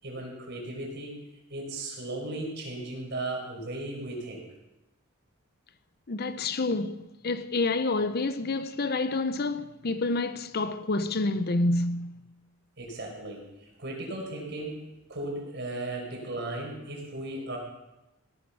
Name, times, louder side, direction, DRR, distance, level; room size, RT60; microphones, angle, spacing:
voice 1, 0.0-4.4 12.8-17.6, right 2 dB, 55° right, 5.2 m, -36 dB
voice 2, 6.1-12.1, left 2 dB, 50° left, 0.7 m, -28 dB
17.5 x 11.0 x 6.1 m
head